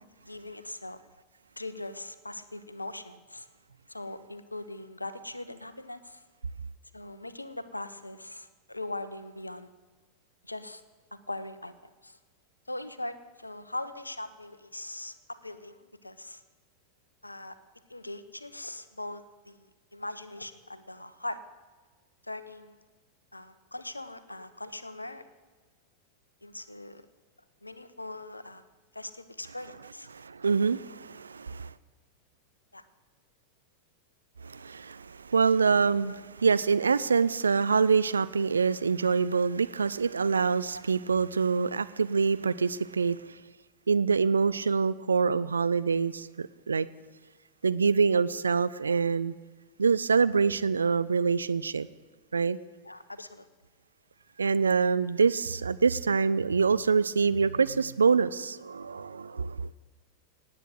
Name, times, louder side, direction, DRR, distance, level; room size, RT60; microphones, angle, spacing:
voice 1, 0.3-1.0 1.6-3.5 3.9-6.2 6.9-9.7 10.5-10.8 11.1-11.7 12.0-12.2 12.7-16.4 17.2-17.6 17.9-21.4 22.2-22.9 23.3-25.3 26.4-27.1 27.6-28.7 28.9-30.1 32.7-32.8 36.1-36.2 40.7-40.8 52.8-53.4, left 2 dB, 85° left, 13 dB, 0.9 m, -40 dB
voice 2, 30.1-31.7 34.4-43.4 43.9-46.9 47.6-49.3 49.8-51.9 52.3-52.6 54.4-59.7, right 5 dB, 75° right, 17 dB, 0.4 m, -25 dB
18.0 x 9.0 x 7.8 m, 1.3 s
figure-of-eight pair, 90°, 0 cm